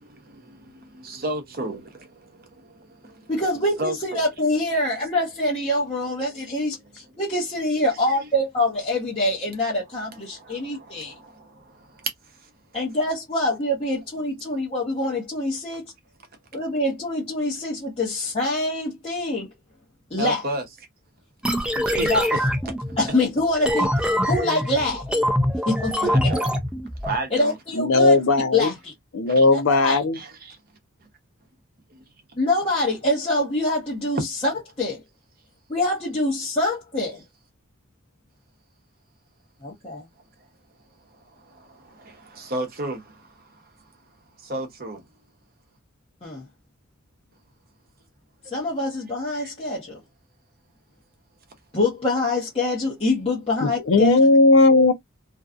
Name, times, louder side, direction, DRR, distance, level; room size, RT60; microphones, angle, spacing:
voice 1, 0.0-3.3 3.8-4.2 10.3-12.5 18.1-18.2 20.2-20.6 21.8-22.4 22.8-23.0 26.0-26.5 27.0-27.6 29.3-29.4 30.1-30.5 41.1-43.6 44.4-45.0 49.3-49.5, right 2 dB, 45° right, 0.8 m, -33 dB
voice 2, 3.3-11.2 12.7-15.9 16.5-19.5 20.1-20.4 22.0-22.3 23.0-23.9 24.2-25.1 25.7-26.3 27.3-28.2 28.5-28.9 29.5-30.0 32.4-34.5 34.8-35.0 35.7-37.2 39.6-40.1 46.2-46.4 48.5-50.0 51.7-54.2, left 2 dB, 30° left, 0.9 m, -25 dB
sound 1, 21.4-27.2, equal, 5° right, 0.3 m, -24 dB
voice 3, 27.7-28.7 29.1-30.2 53.6-54.9, left 2 dB, 65° left, 0.5 m, -17 dB
2.6 x 2.3 x 2.4 m
head